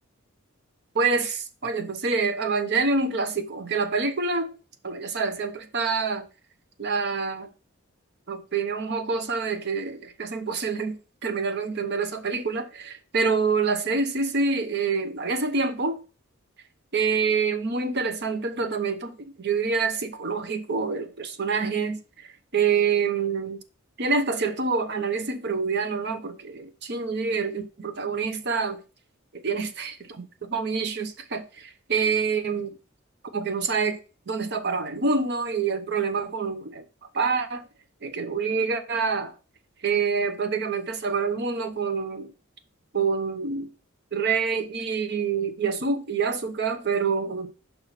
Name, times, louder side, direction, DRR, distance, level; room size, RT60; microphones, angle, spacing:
voice 1, 0.9-4.5 4.8-6.3 6.8-7.5 8.3-16.0 16.9-23.6 24.0-28.8 29.3-32.7 33.3-34.0 34.3-36.8 37.1-37.7 38.0-39.3 39.8-42.3 42.9-43.7 44.1-47.5, right 4 dB, 50° right, 0.9 m, -26 dB
5.6 x 4.1 x 5.8 m
head